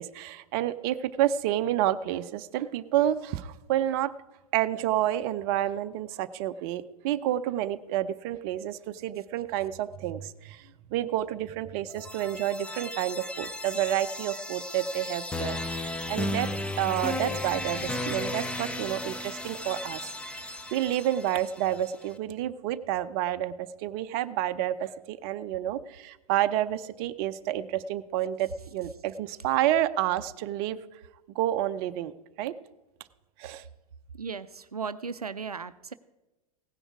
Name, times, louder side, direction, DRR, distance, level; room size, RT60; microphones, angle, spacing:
voice 1, 0.0-4.1 4.5-16.5 16.8-30.8 31.3-32.1 32.4-32.5 33.4-33.6, right 12 dB, 40° right, 11 dB, 0.6 m, -29 dB
sound 1, 11.9-21.8, left 1 dB, 5° left, 0.7 m, -35 dB
voice 2, 34.2-35.9, right 5 dB, 85° right, 13 dB, 0.4 m, -36 dB
16.5 x 9.9 x 4.8 m, 1.1 s
figure-of-eight pair, 95°, 19 cm